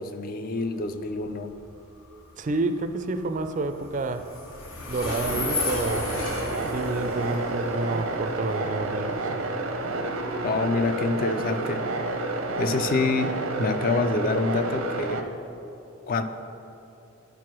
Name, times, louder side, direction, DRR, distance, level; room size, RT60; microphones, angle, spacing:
voice 1, 0.0-1.5 10.4-11.9 12.2-15.2 16.1-16.2, left 3 dB, 45° left, 9 dB, 0.4 m, -27 dB
Train, 0.6-15.3, left 3 dB, 80° left, 1.1 m, -37 dB
voice 2, 2.4-4.3 4.9-6.1 6.7-9.2, right 3 dB, 40° right, 9 dB, 0.4 m, -29 dB
sound 1, 5.1-15.2, right 2 dB, 90° right, 0.7 m, -30 dB
10.0 x 4.7 x 6.0 m, 2.9 s
head